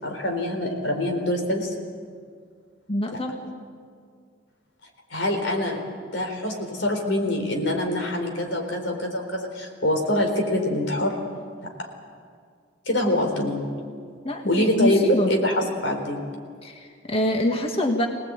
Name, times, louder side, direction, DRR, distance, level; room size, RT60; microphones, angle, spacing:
voice 1, 0.0-1.7 5.1-5.8 6.1-11.2 11.8-11.9 12.9-13.7 14.5-16.2, left 1 dB, 85° left, 3 dB, 4.1 m, -25 dB
voice 2, 2.9-3.4 14.2-15.3 16.6-18.1, left 1 dB, 30° left, 3 dB, 1.8 m, -24 dB
25.0 x 18.5 x 9.0 m, 2.1 s
head